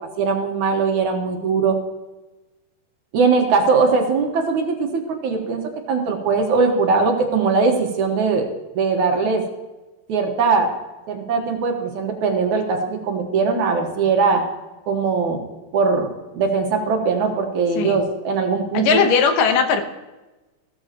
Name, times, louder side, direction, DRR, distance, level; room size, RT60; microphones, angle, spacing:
voice 1, 0.2-1.8 3.1-5.6 5.9-8.5 8.7-9.4 10.1-10.7 11.1-14.4 14.9-15.4 15.7-16.1 16.3-19.0, right 4 dB, 65° right, 2 dB, 2.7 m, -20 dB
voice 2, 17.8-18.1 18.7-19.8, left 6 dB, 75° left, 7 dB, 2.7 m, -18 dB
16.0 x 13.5 x 2.9 m, 1.1 s
omnidirectional pair, 3.9 m